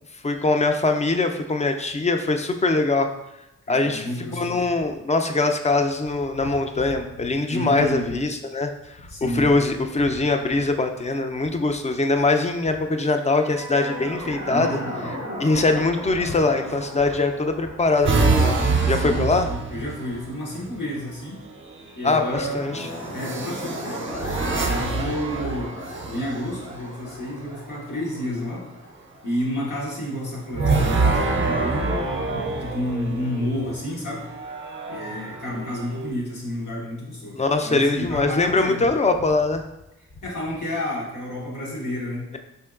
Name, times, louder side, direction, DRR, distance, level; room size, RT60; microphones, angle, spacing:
voice 1, 0.2-3.1 3.7-8.7 9.2-14.8 15.4-18.6 18.9-19.5 22.0-22.9 37.3-39.6, left 3 dB, 25° left, 6 dB, 0.3 m, -22 dB
voice 2, 3.7-4.7 7.5-8.2 9.1-9.5 14.5-15.1 18.9-21.4 22.0-25.7 26.1-28.7 29.2-34.3 34.9-38.8 40.2-42.3, left 1 dB, 90° left, -4 dB, 1.1 m, -30 dB
sound 1, 13.2-20.4 22.3-30.1, equal, 70° left, 1.3 m, -36 dB
sound 2, 18.0-20.3 21.6-22.0 23.2-26.6 30.5-33.5 34.2-36.1, right 3 dB, 40° right, 0.6 m, -25 dB
4.4 x 2.9 x 2.3 m, 0.90 s
cardioid pair, 65°, 30 cm